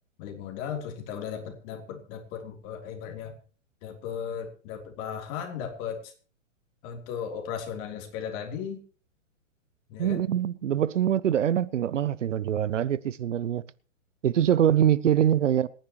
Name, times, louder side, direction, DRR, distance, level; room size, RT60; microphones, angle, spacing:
voice 1, 0.2-3.3 3.8-6.1 6.8-8.8 9.9-10.2 15.0-15.1, left 8 dB, 35° left, 3.4 m, -36 dB
voice 2, 10.0-13.6 14.2-15.7, right 10 dB, 65° right, 0.9 m, -24 dB
25.5 x 10.5 x 3.1 m
hypercardioid pair, 125°, 39 cm